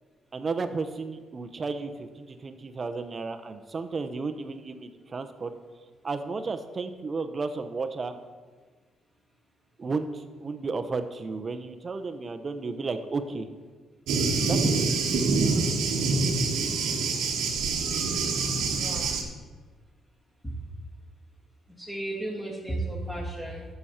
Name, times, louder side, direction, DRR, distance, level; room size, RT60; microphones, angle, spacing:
voice 1, 0.3-5.5 6.0-8.2 9.8-13.5 14.5-14.8, right 4 dB, 35° right, 9 dB, 0.8 m, -33 dB
Thunder, 14.1-19.2, right 4 dB, 85° right, 1.4 m, -26 dB
voice 2, 18.8-19.1 20.4-20.6 21.8-23.7, right 1 dB, 10° left, -7 dB, 2.3 m, -34 dB
12.0 x 7.0 x 4.4 m, 1.5 s
cardioid pair, 90°, 0 cm